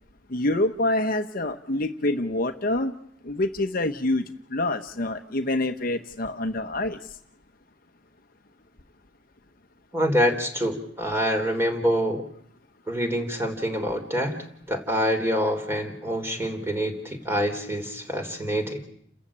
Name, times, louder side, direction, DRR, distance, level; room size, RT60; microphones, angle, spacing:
voice 1, 0.3-2.9 3.2-4.2 4.5-7.0, left 2 dB, 50° left, 7 dB, 1.0 m, -26 dB
voice 2, 9.9-12.2 12.9-14.4 14.7-18.8, equal, 15° right, 5 dB, 3.6 m, -26 dB
29.5 x 14.5 x 8.7 m, 0.68 s
head